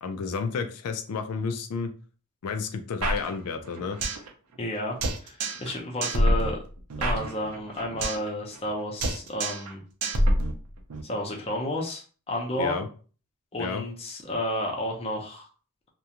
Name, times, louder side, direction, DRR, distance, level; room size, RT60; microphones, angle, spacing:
voice 1, 0.0-1.9 2.4-4.0 12.6-12.9 13.6-13.8, left 5 dB, 90° left, 8 dB, 0.4 m, -31 dB
sound 1, 3.0-4.3 4.5-4.6 5.0-5.7 6.0-8.3 8.5-8.7 9.0-9.7 10.0-11.0, right 1 dB, 90° right, 0.5 m, -27 dB
voice 2, 4.6-5.0 5.2-6.6 7.0-9.8 11.0-12.8 13.5-15.5, left 1 dB, 25° left, 0 dB, 0.5 m, -31 dB
2.4 x 2.1 x 2.8 m, 0.39 s
head